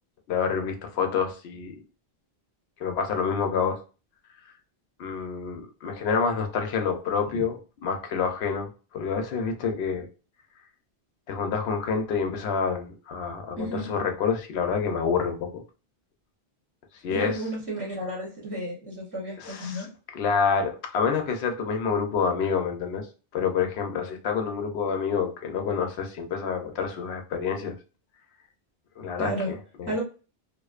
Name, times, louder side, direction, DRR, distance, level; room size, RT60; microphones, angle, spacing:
voice 1, 0.3-1.8 2.8-3.8 5.0-10.1 11.3-15.6 17.0-17.4 19.4-19.9 20.1-23.1 23.3-27.7 29.0-30.0, left 6 dB, 80° left, 5 dB, 0.9 m, -28 dB
voice 2, 13.6-13.9 17.1-19.9 29.2-29.5 29.9-30.0, equal, 25° right, -4 dB, 0.7 m, -32 dB
2.5 x 2.1 x 2.3 m, 0.34 s
omnidirectional pair, 1.1 m